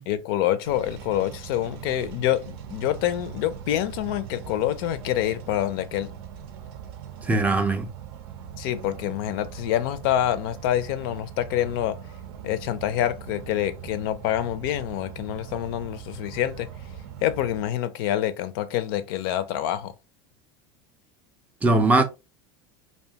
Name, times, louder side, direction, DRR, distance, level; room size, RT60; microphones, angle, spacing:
voice 1, 0.1-6.1 8.6-12.0 12.4-16.7 17.2-19.9, left 12 dB, 70° left, 0.4 m, -26 dB
sound 1, 0.6-17.7, right 8 dB, 80° right, 0.5 m, -41 dB
voice 2, 7.2-7.9 21.6-22.0, right 2 dB, 10° right, 0.3 m, -20 dB
2.6 x 2.2 x 2.7 m
supercardioid pair, 135°, 12 cm